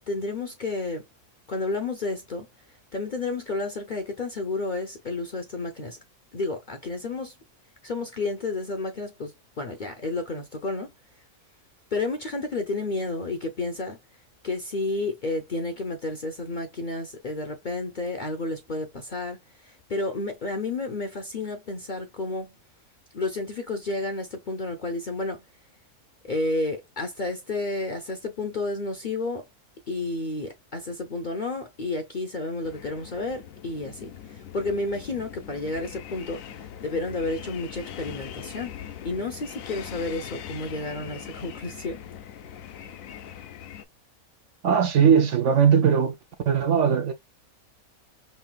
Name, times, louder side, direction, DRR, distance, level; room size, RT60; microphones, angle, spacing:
voice 1, 0.1-1.1 1.5-2.5 2.9-6.0 6.3-7.3 7.8-10.9 11.9-14.0 14.4-22.6 23.1-25.4 26.2-29.5 29.9-38.8 39.0-42.0, left 2 dB, 45° left, 0.7 m, -31 dB
sound 1, 32.6-43.8, left 9 dB, 70° left, 1.0 m, -41 dB
voice 2, 44.6-46.2 46.5-47.1, right 7 dB, 65° right, 0.8 m, -19 dB
5.5 x 2.8 x 2.2 m
omnidirectional pair, 1.6 m